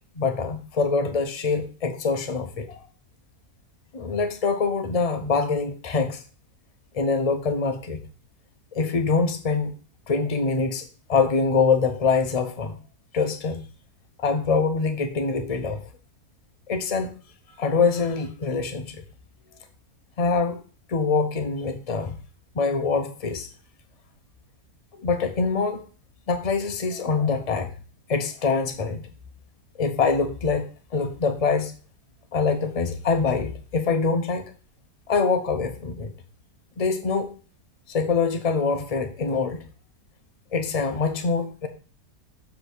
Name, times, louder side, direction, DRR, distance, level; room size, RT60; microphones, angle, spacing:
voice 1, 0.2-2.8 3.9-6.2 6.9-8.0 8.7-9.7 10.1-12.8 13.1-13.6 14.2-15.8 16.7-17.1 17.6-19.0 20.2-20.6 20.9-22.2 22.6-23.5 25.0-25.8 26.3-27.7 28.1-29.1 29.8-30.7 30.9-31.7 32.3-34.4 35.1-36.1 36.8-37.4 37.9-39.6 40.5-41.7, left 4 dB, 70° left, 7 dB, 0.3 m, -24 dB
7.0 x 3.6 x 6.3 m, 0.37 s
omnidirectional pair, 1.7 m